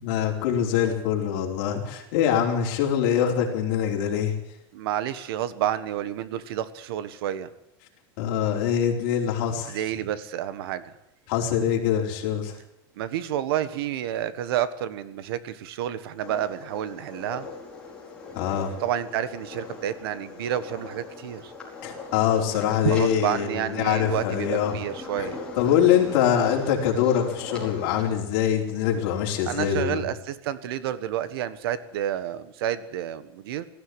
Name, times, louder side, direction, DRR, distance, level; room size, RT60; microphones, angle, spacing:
voice 1, 0.0-4.3 8.2-9.8 11.3-12.5 18.3-18.7 21.8-24.7 25.2-25.3 25.6-30.0, left 9 dB, 50° left, 0 dB, 4.6 m, -24 dB
voice 2, 4.7-7.5 9.7-10.9 13.0-17.5 18.8-21.5 22.8-25.4 29.4-33.7, right 11 dB, 70° right, 15 dB, 1.5 m, -29 dB
sound 1, 16.2-28.2, left 4 dB, 5° left, 4.8 m, -40 dB
19.5 x 14.5 x 9.7 m, 0.84 s
supercardioid pair, 175°, 13 cm